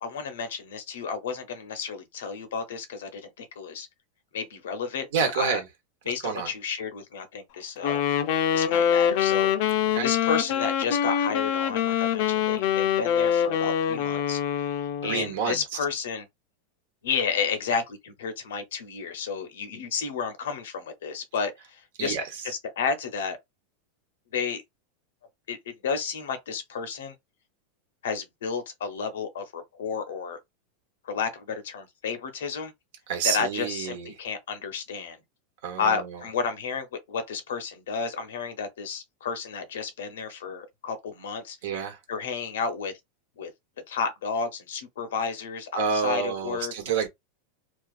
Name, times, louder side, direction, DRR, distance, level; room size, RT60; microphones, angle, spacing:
voice 1, 0.0-3.9 4.3-5.5 6.1-8.0 8.5-9.5 10.0-14.7 15.0-16.3 17.0-22.2 22.4-23.4 24.3-24.6 25.5-25.6 25.8-27.1 28.0-30.4 31.0-32.7 33.2-35.2 35.8-41.6 42.1-42.9 43.4-43.5 43.9-46.7, left 6 dB, 85° left, 0.8 m, -31 dB
voice 2, 5.1-5.7 6.2-6.5 9.9-10.1 15.0-15.6 22.0-22.2 33.1-34.1 35.6-36.2 41.6-42.0 45.7-47.1, right 6 dB, 70° right, 1.1 m, -28 dB
Wind instrument woodwind instrument, 7.8-15.3, left 9 dB, 60° left, 0.5 m, -24 dB
2.4 x 2.4 x 2.4 m
supercardioid pair, 125°, 0 cm